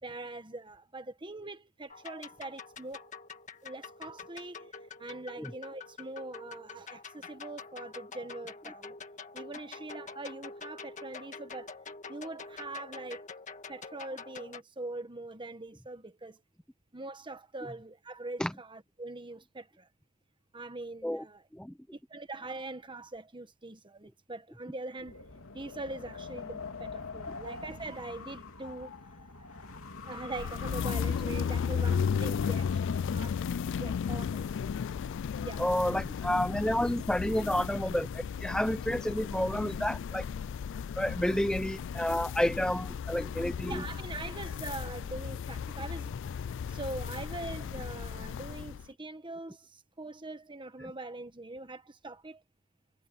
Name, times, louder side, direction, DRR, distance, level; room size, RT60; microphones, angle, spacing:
voice 1, 0.0-3.1 3.6-4.7 5.0-9.0 9.3-11.8 12.1-13.2 13.7-16.4 16.9-19.9 20.5-21.4 21.9-25.2 25.5-28.9 29.3-29.5 30.0-33.4 33.8-34.8 35.4-35.6 43.6-46.1 46.7-52.4, right 2 dB, 25° right, 1.3 m, -42 dB
sound 1, 1.9-14.6, left 4 dB, 35° left, 1.9 m, -46 dB
Wind, 25.0-33.7, left 4 dB, 85° left, 2.9 m, -44 dB
sound 2, 30.3-48.9, left 7 dB, 60° left, 0.3 m, -34 dB
voice 2, 35.6-40.2 41.0-43.8, left 1 dB, 5° left, 0.7 m, -30 dB
head